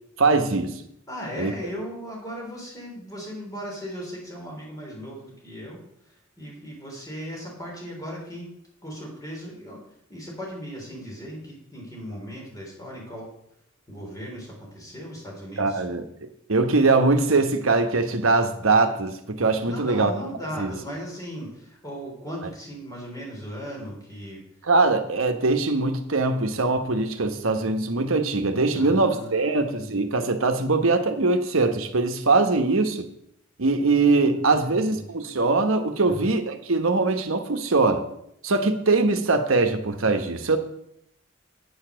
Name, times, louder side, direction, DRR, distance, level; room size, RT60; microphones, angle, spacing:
voice 1, 0.2-0.8 1.4-1.5 15.6-20.1 20.6-20.7 24.7-33.1 33.6-38.0 38.4-40.6, right 3 dB, 90° right, 7 dB, 1.0 m, -22 dB
voice 2, 1.1-8.5 8.8-9.8 10.1-13.3 13.9-15.8 19.7-24.4 28.7-29.6 34.5-35.0 36.0-36.3, equal, 20° left, -2 dB, 3.5 m, -37 dB
8.6 x 6.8 x 6.2 m, 0.75 s
head